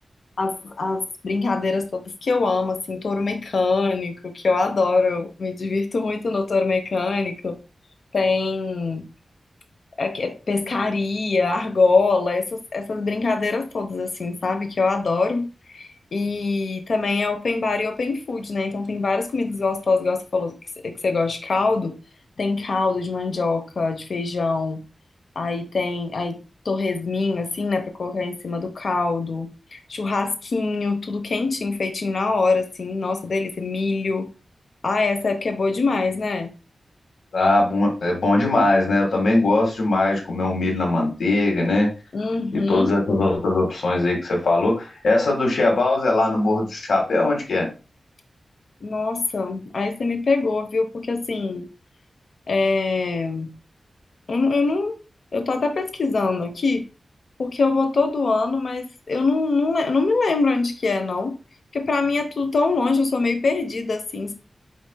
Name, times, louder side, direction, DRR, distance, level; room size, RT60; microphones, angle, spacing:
voice 1, 0.4-7.6 8.1-9.0 10.0-22.0 22.4-24.8 25.3-26.4 26.6-34.3 34.8-36.5 42.1-43.0 48.8-51.7 52.5-53.5 54.3-55.0 55.3-56.8 57.4-61.4 61.7-64.3, left 3 dB, 65° left, 0.8 m, -23 dB
voice 2, 37.3-41.9 42.5-47.7, left 2 dB, 85° left, 1.7 m, -20 dB
5.0 x 4.2 x 2.2 m
wide cardioid pair, 95°, 0 cm